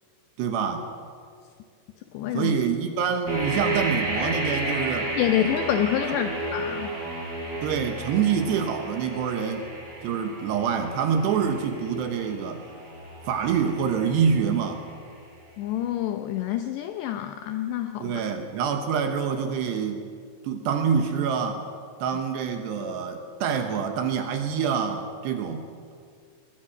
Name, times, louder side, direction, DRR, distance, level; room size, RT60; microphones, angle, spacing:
voice 1, 0.4-0.9 2.3-5.1 7.6-9.7 10.0-12.7 13.3-14.8 18.0-20.0 20.4-21.6 22.0-25.6, right 7 dB, 70° right, 6 dB, 2.9 m, -26 dB
voice 2, 2.1-2.5 5.2-7.0 15.6-18.2, left 11 dB, 80° left, 8 dB, 2.5 m, -27 dB
sound 1, 3.3-15.1, right 1 dB, 15° right, 7.0 m, -32 dB
21.5 x 20.5 x 6.6 m, 2.2 s
omnidirectional pair, 5.9 m